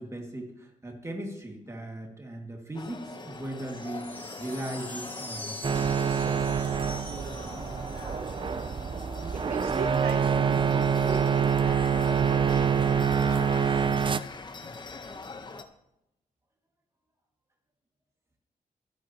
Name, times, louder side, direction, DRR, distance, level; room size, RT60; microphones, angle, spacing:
voice 1, 0.0-5.7, right 1 dB, 20° right, 1 dB, 2.2 m, -38 dB
sound 1, 2.7-15.6, left 3 dB, 30° left, 1.0 m, -42 dB
sound 2, 3.6-8.4, left 1 dB, 15° left, 2.0 m, -44 dB
sound 3, 5.6-14.2, right 7 dB, 35° right, 0.5 m, -26 dB
voice 2, 9.3-13.9, right 7 dB, 85° right, 5 dB, 0.9 m, -40 dB
24.5 x 8.4 x 3.0 m, 0.86 s
cardioid pair, 105°, 14 cm